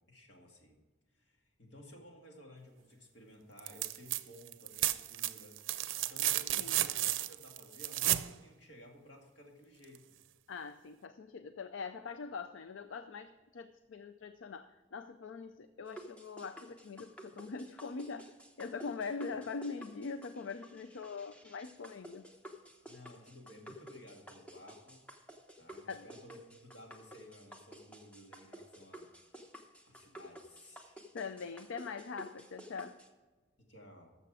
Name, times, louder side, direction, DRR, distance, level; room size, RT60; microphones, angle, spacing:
voice 1, 0.1-0.8 1.1-10.2 22.8-25.1 25.6-29.1 29.9-31.0 33.6-34.2, equal, 65° left, 1 dB, 2.1 m, -56 dB
sound 1, 3.6-4.2 4.5-8.3 10.0-10.1, right 14 dB, 80° right, 0.5 m, -33 dB
voice 2, 10.5-22.3 25.9-26.1 31.1-33.0, left 4 dB, 80° left, 10 dB, 0.5 m, -43 dB
sound 2, 15.9-33.1, equal, 5° left, 0.9 m, -53 dB
13.5 x 6.9 x 4.8 m, 1.3 s
head